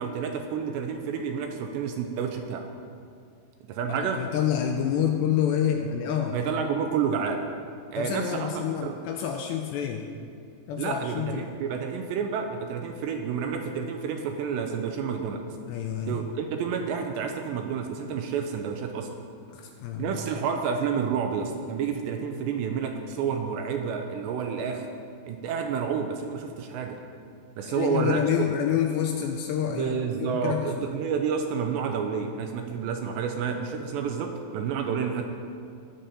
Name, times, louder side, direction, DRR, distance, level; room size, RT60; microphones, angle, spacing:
voice 1, 0.0-2.6 3.7-4.2 6.3-7.4 7.9-8.5 8.8-9.0 10.8-15.4 16.1-19.1 20.0-24.9 25.3-27.0 27.6-28.2 29.7-35.2, right 6 dB, 85° right, 4 dB, 2.7 m, -29 dB
voice 2, 3.9-6.4 8.0-10.1 10.7-11.5 15.7-16.2 19.5-20.1 27.6-30.9, left 9 dB, 85° left, 3 dB, 2.6 m, -28 dB
20.0 x 7.8 x 4.2 m, 2.4 s
omnidirectional pair, 5.4 m